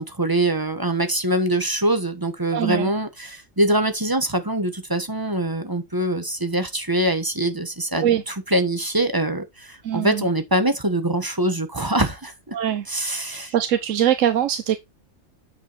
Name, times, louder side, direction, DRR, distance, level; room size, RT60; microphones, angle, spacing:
voice 1, 0.0-12.5 12.9-13.5, right 1 dB, 15° right, 1.1 m, -23 dB
voice 2, 2.5-2.9 8.0-8.2 9.8-10.2 12.5-12.8 13.3-14.8, right 10 dB, 75° right, 1.1 m, -22 dB
9.1 x 4.9 x 4.1 m
omnidirectional pair, 1.4 m